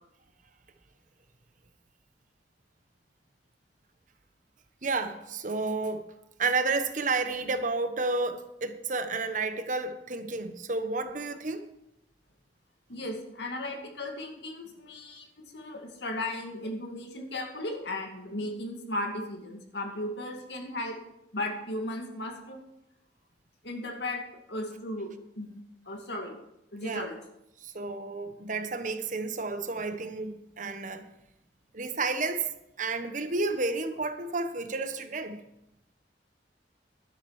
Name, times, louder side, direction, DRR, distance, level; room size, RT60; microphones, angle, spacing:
voice 1, 4.8-6.1 6.4-11.7 26.8-27.1 27.6-31.1 31.7-32.5 32.8-35.4, right 3 dB, 45° right, 1.1 m, -31 dB
voice 2, 12.9-21.0 21.3-22.6 23.6-24.2 24.5-25.5 25.9-26.4 26.7-27.1, left 1 dB, 65° left, 2.3 m, -36 dB
11.5 x 11.0 x 4.8 m
head